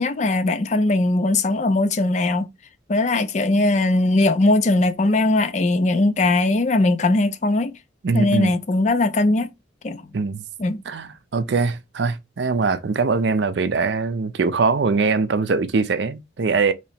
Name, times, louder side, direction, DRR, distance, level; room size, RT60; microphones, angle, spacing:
voice 1, 0.0-2.5 2.9-7.7 8.1-9.5 9.8-10.0 10.6-10.8, left 2 dB, 35° left, 0.4 m, -19 dB
voice 2, 8.0-8.5 10.1-10.4 10.9-16.7, right 4 dB, 60° right, 0.5 m, -22 dB
3.1 x 2.9 x 4.1 m
head